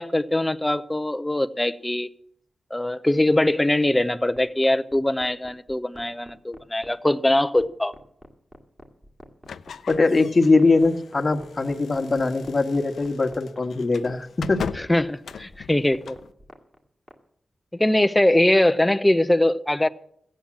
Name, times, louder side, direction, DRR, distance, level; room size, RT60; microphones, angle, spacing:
voice 1, 0.0-2.1 2.7-7.9 14.8-16.2 17.7-19.9, left 1 dB, 15° left, 0.6 m, -22 dB
sound 1, 4.3-17.2, right 1 dB, 20° right, 1.9 m, -46 dB
sound 2, 9.4-16.3, left 6 dB, 85° left, 0.5 m, -39 dB
voice 2, 9.9-14.6, left 3 dB, 40° left, 1.4 m, -21 dB
15.0 x 8.8 x 7.2 m
cardioid pair, 65°, 0 cm